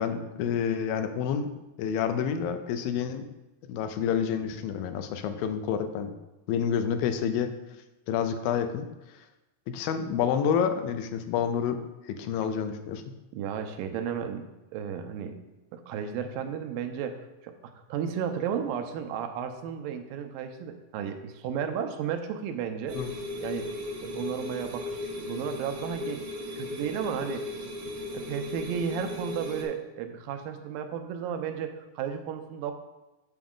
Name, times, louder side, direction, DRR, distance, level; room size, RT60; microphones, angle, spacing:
voice 1, 0.0-3.3 3.7-6.1 6.5-7.5 8.1-8.9 9.7-13.0 22.9-23.1, left 7 dB, 90° left, 8 dB, 2.4 m, -29 dB
voice 2, 13.3-14.5 14.7-15.4 15.7-17.2 17.4-23.0 23.4-23.7 24.0-26.2 26.6-27.4 28.1-32.7, right 8 dB, 80° right, 6 dB, 2.4 m, -33 dB
sound 1, 22.9-29.6, left 2 dB, 50° right, 1.8 m, -36 dB
7.3 x 6.9 x 3.7 m, 1.0 s
omnidirectional pair, 4.0 m